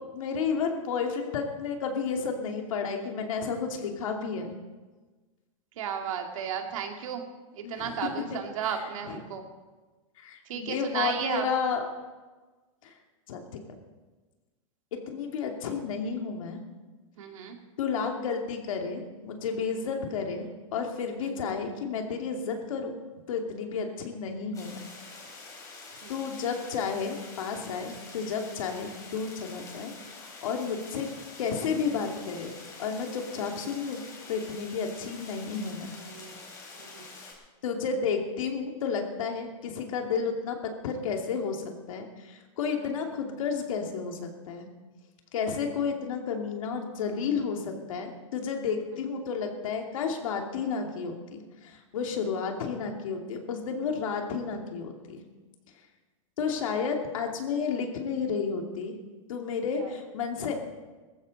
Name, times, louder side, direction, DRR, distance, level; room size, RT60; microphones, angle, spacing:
voice 1, 0.1-4.5 7.6-8.0 8.3-8.8 9.1-9.2 10.2-11.8 12.8-12.9 13.3-13.6 15.1-16.6 17.8-22.9 23.3-24.8 26.1-31.1 31.4-32.5 32.8-34.0 34.3-35.9 37.6-44.7 45.3-55.2 56.4-59.0 59.3-60.6, left 5 dB, 75° left, 3 dB, 2.6 m, -32 dB
voice 2, 5.8-7.2 7.6-9.4 10.5-11.5 17.2-17.6 19.8-19.9 21.2-21.3 23.7-24.0 26.0-26.2 33.4-33.5 35.9-36.5 36.8-37.1 42.8-42.9 59.7-59.9, right 8 dB, 75° right, 4 dB, 2.4 m, -34 dB
sound 1, 24.5-37.3, left 3 dB, 20° left, 4.0 m, -46 dB
18.0 x 14.5 x 4.2 m, 1.3 s
supercardioid pair, 140°, 17 cm